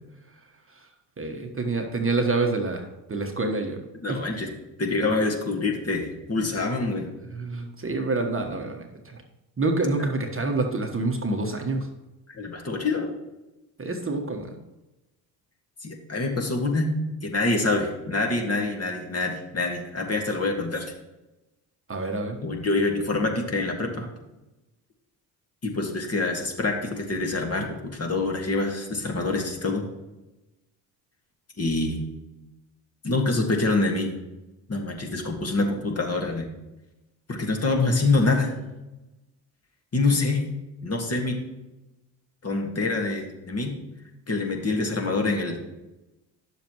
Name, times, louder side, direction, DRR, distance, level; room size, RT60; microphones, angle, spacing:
voice 1, 1.2-3.8 4.1-4.2 7.3-9.2 9.6-11.9 13.8-14.5 21.9-22.4, right 3 dB, 25° right, 3 dB, 1.2 m, -27 dB
voice 2, 4.0-4.5 4.8-7.1 12.4-13.1 15.8-16.9 17.2-20.9 22.4-24.1 25.6-27.7 27.9-29.8 31.6-32.0 33.0-34.1 34.7-36.5 37.3-38.5 39.9-40.4 40.8-41.4 42.4-43.8 44.3-45.7, left 3 dB, 30° left, 1 dB, 1.8 m, -26 dB
10.0 x 7.0 x 3.1 m, 1.0 s
hypercardioid pair, 55°, 50 cm